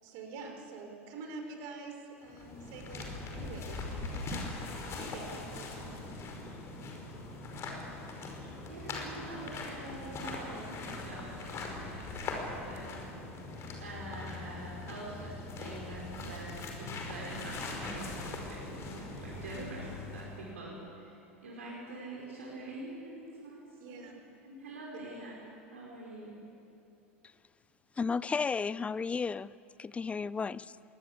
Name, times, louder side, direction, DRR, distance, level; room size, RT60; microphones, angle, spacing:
voice 1, 0.0-4.4 4.8-5.9 19.5-19.6 23.8-24.1, right 3 dB, 55° right, 5.2 m, -46 dB
sound 1, 2.2-20.5, left 3 dB, 40° left, 5.6 m, -41 dB
voice 2, 8.7-12.3 12.6-12.9 13.8-16.5 16.8-19.9 20.1-21.1 21.4-24.1 24.4-25.4 25.7-26.4, right 2 dB, 80° right, 5.5 m, -45 dB
voice 3, 28.0-29.5 29.8-30.7, left 5 dB, 15° left, 0.6 m, -33 dB
23.5 x 20.0 x 8.7 m
figure-of-eight pair, 80°, 7 cm